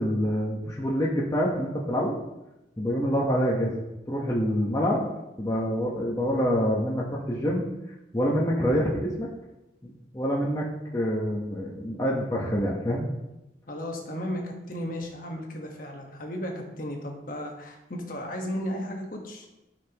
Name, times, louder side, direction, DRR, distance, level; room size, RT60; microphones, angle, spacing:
voice 1, 0.0-2.1 2.8-3.8 4.1-5.1 5.4-7.6 8.1-9.3 9.8-10.7 10.9-13.0, equal, 20° left, -3 dB, 1.1 m, -26 dB
voice 2, 13.7-19.4, equal, 45° left, 1 dB, 1.4 m, -34 dB
13.5 x 5.7 x 3.0 m, 0.95 s
head